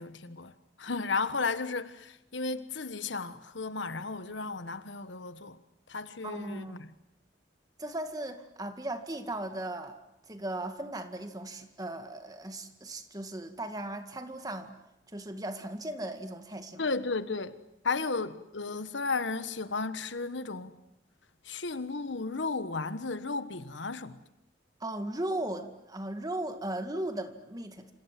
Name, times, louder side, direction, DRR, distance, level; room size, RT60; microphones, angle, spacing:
voice 1, 0.0-5.6 5.9-6.9 16.8-17.6 17.8-20.7 21.4-24.2, left 4 dB, 80° left, 1.4 m, -34 dB
voice 2, 6.2-6.8 7.8-10.0 10.3-14.7 15.1-16.9 24.8-27.9, right 1 dB, 20° right, 2.0 m, -37 dB
27.5 x 26.5 x 7.6 m
head